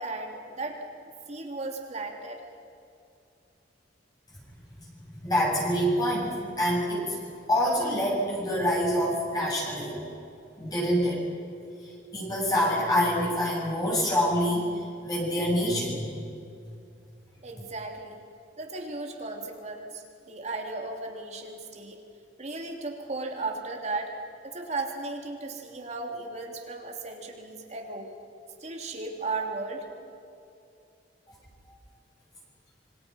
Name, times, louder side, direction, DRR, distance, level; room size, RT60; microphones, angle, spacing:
voice 1, 0.0-2.4 17.4-18.2 18.6-22.0 22.4-24.1 24.4-28.1 28.6-29.8, right 3 dB, 40° right, 2 dB, 3.1 m, -36 dB
voice 2, 5.2-7.2 7.5-10.0 10.6-11.2 12.1-14.7 15.0-16.1, equal, 20° left, -5 dB, 7.5 m, -26 dB
27.5 x 24.5 x 5.7 m, 2.5 s
head